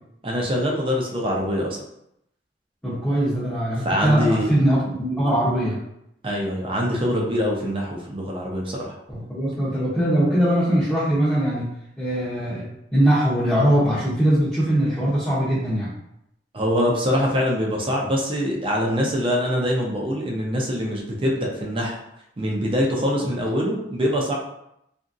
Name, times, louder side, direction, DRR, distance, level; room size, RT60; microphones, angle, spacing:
voice 1, 0.2-1.8 3.8-4.5 6.2-8.9 16.5-22.0 22.4-24.3, equal, 30° right, -1 dB, 0.5 m, -24 dB
voice 2, 2.8-5.8 9.1-11.7 12.0-15.9, right 1 dB, 10° left, -12 dB, 0.7 m, -21 dB
2.8 x 2.6 x 2.5 m, 0.80 s
head